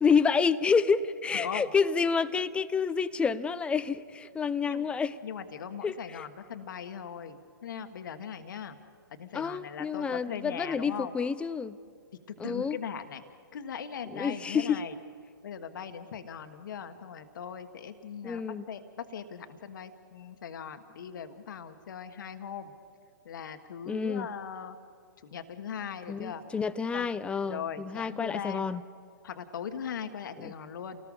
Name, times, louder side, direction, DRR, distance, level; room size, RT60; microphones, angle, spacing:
voice 1, 0.0-5.1 5.8-6.3 9.3-11.8 12.4-12.8 14.1-14.8 18.2-18.6 23.9-24.3 26.1-28.8 30.4-30.5, left 5 dB, 10° left, 15 dB, 0.5 m, -28 dB
voice 2, 1.3-1.7 4.6-4.9 5.2-8.8 9.2-11.1 12.4-13.2 13.5-15.0 15.4-22.7 23.2-24.8 25.2-26.5 26.9-27.1 27.4-28.6 29.2-31.0, left 7 dB, 60° left, 8 dB, 1.5 m, -39 dB
30.0 x 19.0 x 5.5 m, 2.2 s
hypercardioid pair, 125°, 12 cm